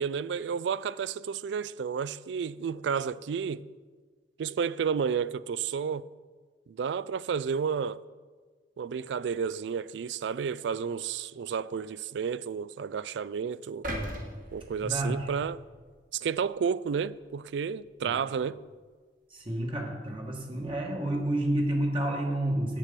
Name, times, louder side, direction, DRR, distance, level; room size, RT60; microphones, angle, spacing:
voice 1, 0.0-3.7 4.4-6.1 6.7-8.0 8.8-13.9 14.5-15.6 16.1-18.6, right 6 dB, 75° right, 0.3 m, -31 dB
sound 1, 13.8-16.0 16.5-16.6, equal, 50° right, 1.6 m, -39 dB
voice 2, 14.8-15.3 18.0-18.1 19.3-22.8, right 1 dB, 30° right, 1.4 m, -30 dB
9.0 x 7.5 x 6.7 m
head